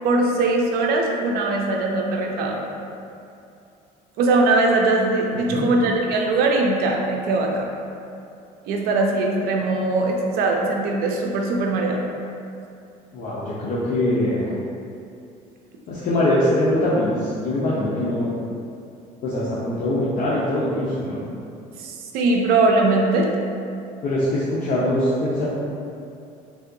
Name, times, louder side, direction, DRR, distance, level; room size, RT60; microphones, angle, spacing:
voice 1, 0.0-2.6 4.2-7.7 8.7-12.0 21.8-23.3, right 2 dB, 70° right, 0 dB, 0.5 m, -21 dB
voice 2, 5.3-5.7 13.1-14.5 15.9-18.3 19.2-21.2 24.0-25.5, left 1 dB, 55° left, -9 dB, 0.7 m, -23 dB
3.4 x 2.7 x 2.6 m, 2.6 s
cardioid pair, 110°, 17 cm